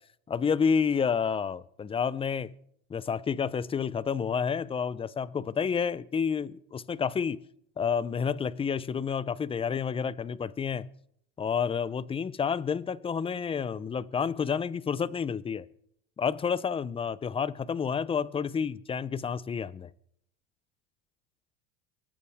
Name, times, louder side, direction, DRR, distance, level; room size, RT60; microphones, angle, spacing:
voice 1, 0.3-2.5 2.9-7.4 7.8-10.9 11.4-15.7 16.2-19.9, left 6 dB, 20° left, 0.6 m, -29 dB
24.5 x 13.5 x 3.6 m
supercardioid pair, 105°, 31 cm